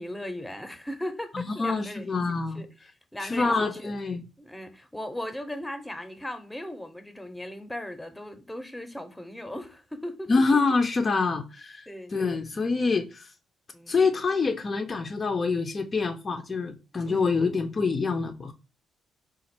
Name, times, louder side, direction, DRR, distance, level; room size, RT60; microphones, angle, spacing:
voice 1, 0.0-2.7 3.1-3.9 4.4-10.3 11.9-12.2 13.7-14.1 17.1-17.6, left 1 dB, 10° left, 0.9 m, -38 dB
voice 2, 1.3-2.6 3.2-4.2 10.3-13.3 13.9-18.5, left 4 dB, 35° left, 0.6 m, -26 dB
4.0 x 2.4 x 4.4 m
cardioid pair, 90°, 0 cm